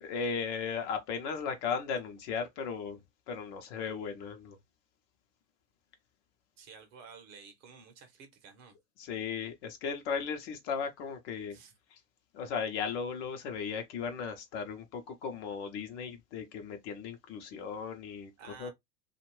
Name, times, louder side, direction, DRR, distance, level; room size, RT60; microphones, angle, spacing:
voice 1, 0.0-3.0 3.3-4.6 9.0-11.6 11.9-12.0 12.3-18.3 18.6-18.7, left 6 dB, 45° left, 0.8 m, -36 dB
voice 2, 6.6-8.8 11.5-11.8 18.4-18.7, right 6 dB, 35° right, 0.9 m, -52 dB
2.5 x 2.4 x 3.1 m
hypercardioid pair, 105°, 48 cm